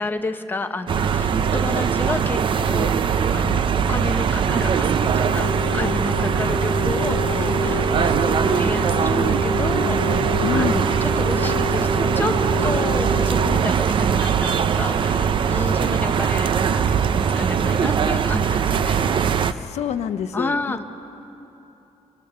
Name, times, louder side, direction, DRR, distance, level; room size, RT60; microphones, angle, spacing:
voice 1, 0.0-3.6 3.9-12.3 12.6-19.0 20.3-20.8, left 3 dB, 20° left, 6 dB, 1.0 m, -31 dB
sound 1, 0.9-19.5, right 7 dB, 45° right, 0.6 m, -21 dB
Wind instrument woodwind instrument, 5.0-13.6, left 4 dB, 50° left, 1.5 m, -29 dB
voice 2, 10.4-11.0 19.4-20.8, left 8 dB, 75° left, 11 dB, 0.8 m, -28 dB
24.5 x 24.5 x 6.8 m, 3.0 s
wide cardioid pair, 170°, 11 cm